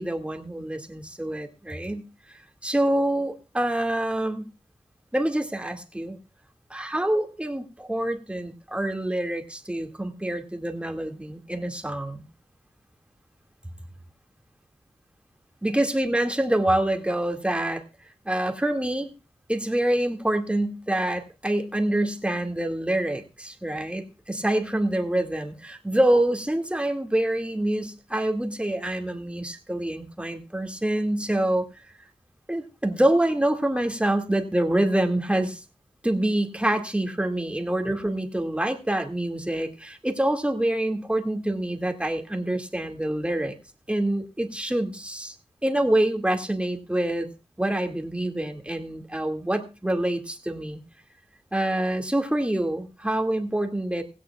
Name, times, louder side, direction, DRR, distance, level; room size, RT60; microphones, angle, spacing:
voice 1, 0.0-2.0 2.6-4.5 5.1-6.2 6.7-12.3 15.6-17.8 18.3-19.1 19.5-31.7 32.5-35.6 36.0-43.5 43.9-45.3 45.6-47.3 47.6-50.8 51.5-54.0, right 1 dB, 10° right, 4 dB, 2.1 m, -26 dB
17.5 x 16.5 x 2.4 m, 0.31 s
wide cardioid pair, 60°, 11 cm